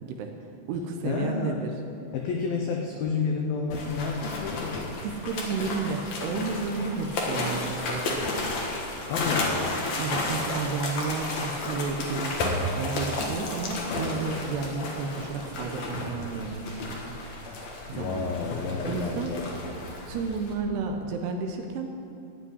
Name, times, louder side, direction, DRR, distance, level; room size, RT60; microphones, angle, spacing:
voice 1, 0.0-0.3 0.7-1.8 5.0-8.2 10.0-17.2 17.9-18.4 18.8-19.4 20.1-21.9, right 4 dB, 80° right, 3 dB, 2.5 m, -32 dB
voice 2, 1.0-1.6 2.1-4.9 9.1-9.9 17.9-19.7, left 5 dB, 85° left, 1 dB, 2.1 m, -30 dB
sound 1, 3.7-20.5, left 2 dB, 65° left, 1.8 m, -32 dB
15.0 x 5.5 x 9.7 m, 2.6 s
omnidirectional pair, 5.4 m